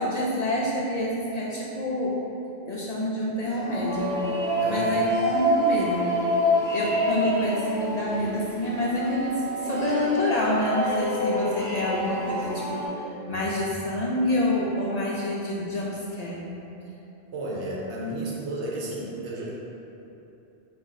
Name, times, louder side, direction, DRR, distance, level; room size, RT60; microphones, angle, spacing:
voice 1, 0.0-2.2 2.6-4.3 4.7-6.1 6.7-16.5, left 1 dB, 50° left, -5 dB, 0.5 m, -27 dB
sound 1, 3.5-12.9, equal, 5° left, 0.7 m, -27 dB
voice 2, 17.3-19.5, right 1 dB, 90° right, -4 dB, 1.1 m, -32 dB
4.7 x 2.5 x 4.0 m, 3.0 s
omnidirectional pair, 1.1 m